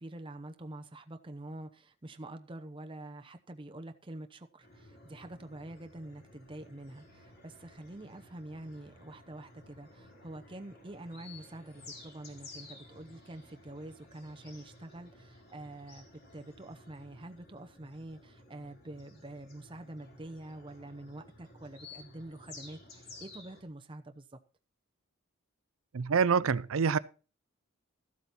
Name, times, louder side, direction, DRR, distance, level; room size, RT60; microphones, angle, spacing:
voice 1, 0.0-24.3, right 1 dB, 25° right, 0.8 m, -46 dB
sound 1, 4.6-23.6, left 2 dB, 50° left, 3.4 m, -54 dB
voice 2, 25.9-27.0, right 6 dB, 80° right, 0.5 m, -26 dB
14.0 x 8.0 x 4.2 m
head